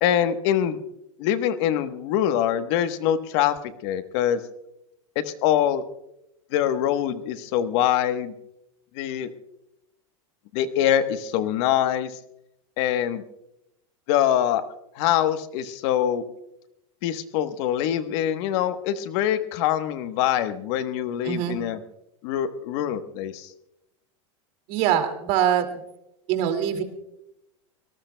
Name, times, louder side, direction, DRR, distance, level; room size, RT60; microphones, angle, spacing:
voice 1, 0.0-0.8 1.2-3.5 3.8-4.4 5.1-5.8 6.5-8.3 9.0-9.3 10.5-12.1 12.8-13.2 14.1-14.6 15.0-16.2 17.0-21.8 22.2-23.5, left 10 dB, 55° left, 9 dB, 1.2 m, -24 dB
voice 2, 21.2-21.6 24.7-25.7 26.3-26.8, right 10 dB, 50° right, 7 dB, 2.3 m, -23 dB
25.5 x 18.5 x 2.2 m, 0.84 s
supercardioid pair, 135°, 17 cm